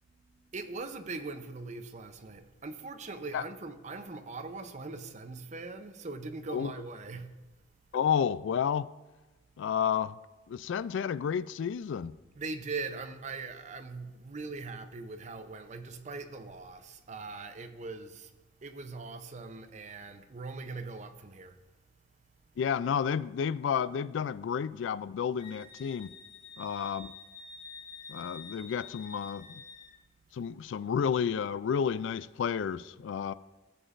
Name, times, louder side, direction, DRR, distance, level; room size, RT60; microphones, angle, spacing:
voice 1, 0.4-7.3 12.3-18.3 18.6-21.6, right 3 dB, 40° right, 0.6 m, -41 dB
voice 2, 7.9-8.9 9.6-10.2 10.5-12.2 22.6-26.1 26.6-27.1 28.1-29.6 30.3-33.3, left 7 dB, 70° left, 0.3 m, -31 dB
Wind instrument woodwind instrument, 25.4-29.9, left 4 dB, 35° left, 2.3 m, -48 dB
15.0 x 7.0 x 2.5 m
head